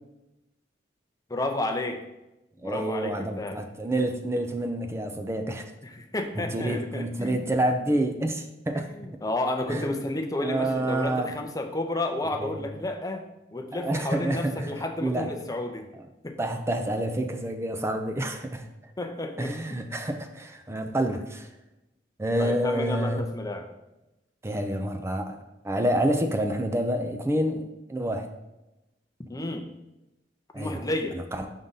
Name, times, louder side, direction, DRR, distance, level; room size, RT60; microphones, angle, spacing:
voice 1, 1.3-2.0 2.6-3.6 5.8-7.5 8.7-13.2 13.5-15.9 16.2-16.4 19.0-19.8 22.4-23.7 29.3-29.7 30.5-31.2, left 2 dB, 20° left, 4 dB, 0.7 m, -31 dB
voice 2, 2.6-5.7 6.3-9.2 9.7-9.8 10.4-11.3 12.4-12.7 13.7-14.7 15.0-15.3 16.4-18.7 19.4-21.5 22.2-23.2 24.4-27.6 27.9-28.3 30.5-30.8 31.1-31.5, right 1 dB, 15° right, 5 dB, 0.5 m, -28 dB
5.4 x 3.7 x 5.5 m, 0.95 s
head